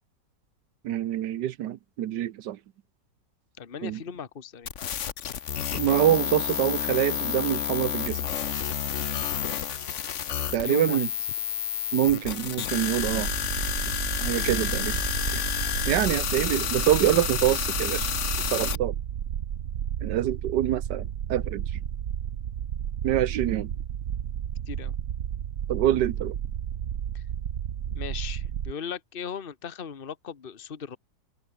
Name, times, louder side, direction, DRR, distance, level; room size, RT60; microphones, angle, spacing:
voice 1, 0.8-2.6 3.8-4.0 5.7-8.2 10.5-11.1 11.9-13.3 14.2-15.0 15.3-15.4 15.9-18.1 18.5-18.9 20.0-21.6 23.0-23.7 25.7-26.4, right 12 dB, 75° right, 1.4 m, -25 dB
voice 2, 3.6-4.7 10.6-11.1 24.7-24.9 27.1-27.2 27.9-31.0, left 7 dB, 35° left, 1.4 m, -38 dB
sound 1, 4.7-18.8, left 8 dB, 50° left, 1.2 m, -30 dB
sound 2, 13.0-28.7, right 9 dB, 50° right, 1.1 m, -32 dB
omnidirectional pair, 1.9 m